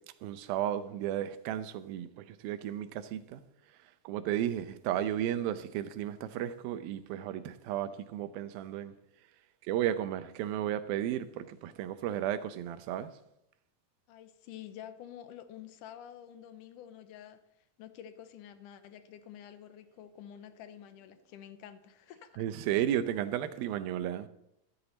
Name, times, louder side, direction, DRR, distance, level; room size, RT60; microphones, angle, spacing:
voice 1, 0.2-3.4 4.1-8.9 9.7-13.1 22.4-24.3, right 11 dB, 90° right, 2.6 m, -33 dB
voice 2, 14.1-17.4 17.8-22.4, left 10 dB, 75° left, 2.2 m, -49 dB
14.0 x 13.0 x 4.0 m
omnidirectional pair, 4.1 m